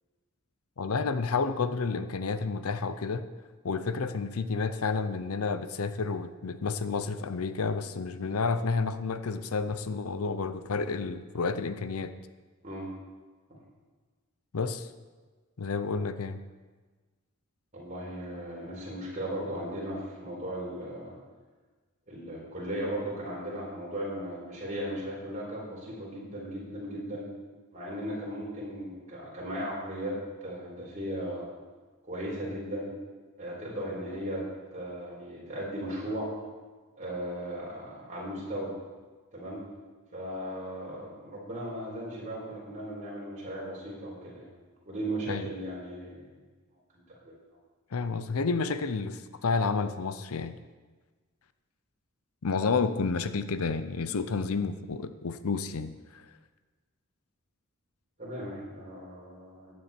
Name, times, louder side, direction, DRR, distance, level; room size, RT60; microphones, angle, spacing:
voice 1, 0.8-3.3 3.6-12.1 14.5-14.9 15.6-16.4 45.3-45.5 47.9-50.6 52.4-56.3, left 4 dB, 80° left, 12 dB, 0.6 m, -30 dB
voice 2, 17.7-21.1 22.1-27.3 27.7-31.5 32.0-32.9 33.4-34.5 34.7-36.3 37.0-38.7 39.3-39.6 40.1-44.5 44.8-46.3 47.2-47.4 58.2-59.7, right 1 dB, 35° right, -4 dB, 4.2 m, -37 dB
14.5 x 9.6 x 4.4 m, 1.3 s
head